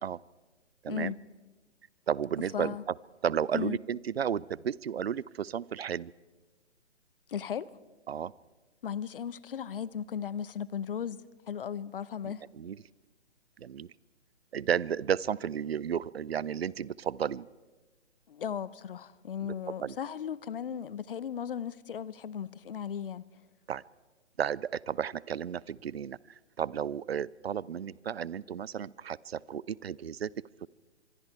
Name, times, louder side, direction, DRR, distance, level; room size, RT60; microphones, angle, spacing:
voice 1, 2.1-2.8 3.2-6.1 8.1-8.3 12.2-12.8 13.6-13.9 14.5-17.5 19.8-19.9 23.7-23.8 24.4-26.2 26.6-30.3 30.6-30.7, right 8 dB, 60° right, 0.6 m, -33 dB
voice 2, 7.3-7.7 8.8-11.2 11.5-12.5 18.3-23.2, left 8 dB, 50° left, 0.8 m, -36 dB
26.0 x 24.5 x 4.6 m
figure-of-eight pair, 130°, 34 cm